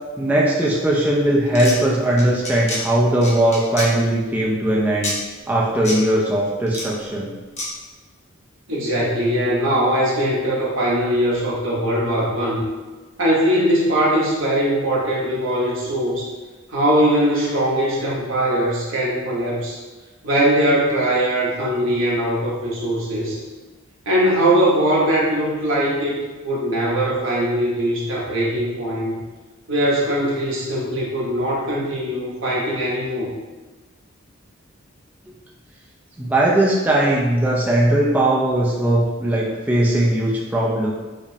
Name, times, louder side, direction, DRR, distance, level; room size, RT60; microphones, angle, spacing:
voice 1, 0.2-5.2 5.5-7.3 36.2-40.9, right 1 dB, 10° right, -5 dB, 0.3 m, -19 dB
sound 1, 1.5-1.8 2.2-2.8 3.2-3.9 5.0-5.2 5.8-6.0 6.7-6.9 7.6-7.7, left 2 dB, 35° left, 0.7 m, -27 dB
voice 2, 8.7-12.6 13.2-16.3 16.7-19.8 20.2-23.4 24.1-26.2 26.4-29.2 29.7-33.3, right 1 dB, 65° right, -5 dB, 0.9 m, -21 dB
5.1 x 2.0 x 2.7 m, 1.3 s
head